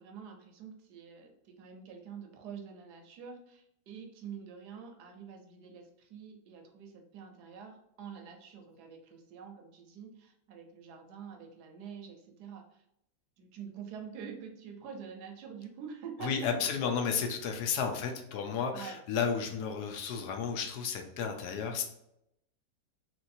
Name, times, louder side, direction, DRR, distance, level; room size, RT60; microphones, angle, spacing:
voice 1, 0.0-12.8 13.4-16.7 18.7-19.0 19.4-19.6, right 6 dB, 80° right, 4 dB, 1.2 m, -46 dB
voice 2, 16.2-21.8, left 6 dB, 75° left, 4 dB, 1.1 m, -32 dB
3.2 x 3.0 x 2.6 m, 0.79 s
omnidirectional pair, 1.7 m